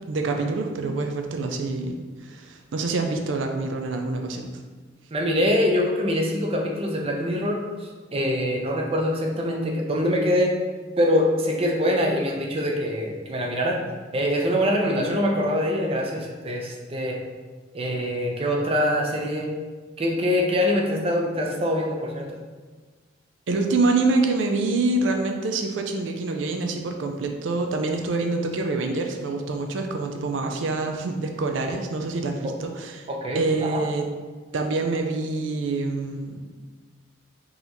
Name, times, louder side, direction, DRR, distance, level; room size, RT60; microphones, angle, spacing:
voice 1, 0.1-4.5 23.5-33.1 33.3-34.1 34.5-36.4, right 3 dB, 80° right, 4 dB, 0.4 m, -26 dB
voice 2, 5.1-10.5 11.0-13.8 14.1-17.2 17.7-19.5 20.0-22.4 32.4-32.5 33.1-33.8, equal, 30° right, 0 dB, 0.6 m, -24 dB
3.9 x 2.9 x 3.9 m, 1.4 s
head